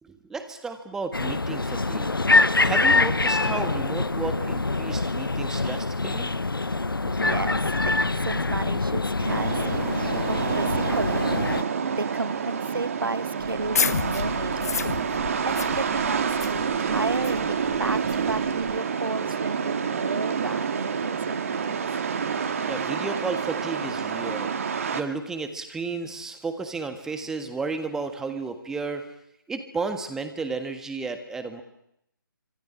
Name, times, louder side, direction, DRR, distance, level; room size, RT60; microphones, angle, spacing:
voice 1, 0.0-2.2 2.6-6.3 22.7-24.5 24.9-29.0 29.5-31.6, right 4 dB, 5° right, 8 dB, 1.6 m, -33 dB
sound 1, 1.1-11.6, left 3 dB, 80° left, 1.0 m, -24 dB
voice 2, 6.7-11.3 12.0-14.8 15.4-16.4 16.8-21.9, right 3 dB, 80° right, 20 dB, 1.0 m, -33 dB
sound 2, 9.3-25.0, right 6 dB, 40° right, 2.2 m, -28 dB
sound 3, 13.4-18.8, left 6 dB, 45° left, 1.0 m, -31 dB
26.0 x 25.0 x 8.8 m, 0.79 s
figure-of-eight pair, 150°, 12 cm